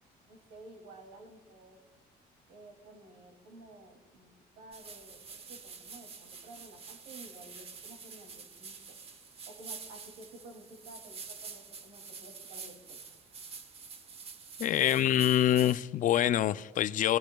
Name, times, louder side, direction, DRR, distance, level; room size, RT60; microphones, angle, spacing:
voice 1, 0.3-1.8 2.5-4.3 4.6-9.0 9.5-13.0, right 2 dB, 80° right, 2.6 m, -53 dB
sound 1, 4.7-15.8, right 5 dB, 35° right, 0.9 m, -47 dB
voice 2, 14.6-17.2, left 11 dB, 50° left, 0.4 m, -25 dB
21.5 x 14.5 x 2.3 m
cardioid pair, 110°, 17 cm